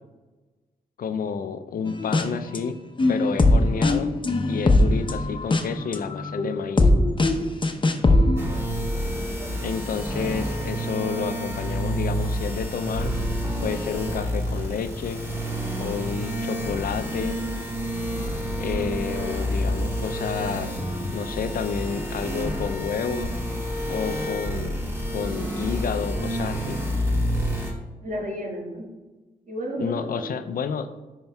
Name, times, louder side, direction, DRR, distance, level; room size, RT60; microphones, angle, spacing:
voice 1, 1.0-2.8 3.1-4.2 4.5-6.9 9.6-15.2 15.8-17.4 18.6-20.8 21.1-23.3 23.9-24.8 25.1-26.8 29.8-31.0, left 6 dB, 60° left, 10 dB, 0.4 m, -30 dB
sound 1, 1.9-2.6 3.0-8.4, left 2 dB, 30° left, 0.8 m, -20 dB
sound 2, 8.4-27.7, equal, 15° right, 1.7 m, -29 dB
voice 2, 28.0-28.9 29.5-30.4, equal, 55° right, -1 dB, 1.7 m, -33 dB
10.5 x 4.6 x 2.3 m, 1.2 s
supercardioid pair, 45°, 16 cm